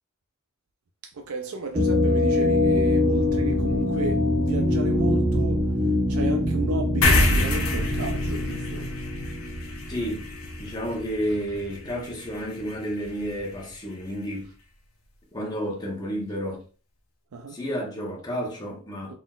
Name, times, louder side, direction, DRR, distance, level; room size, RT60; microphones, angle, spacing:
voice 1, 1.1-5.6 6.1-8.9 17.3-17.6 19.1-19.2, right 2 dB, 85° right, 0.5 m, -33 dB
sound 1, 1.7-10.4, left 1 dB, 25° right, 1.0 m, -24 dB
sound 2, 7.0-13.8, left 2 dB, 85° left, 1.0 m, -28 dB
voice 2, 9.9-10.3 10.6-14.5 15.3-16.6 17.5-19.1, equal, 20° left, 1.3 m, -31 dB
3.9 x 3.9 x 2.4 m
head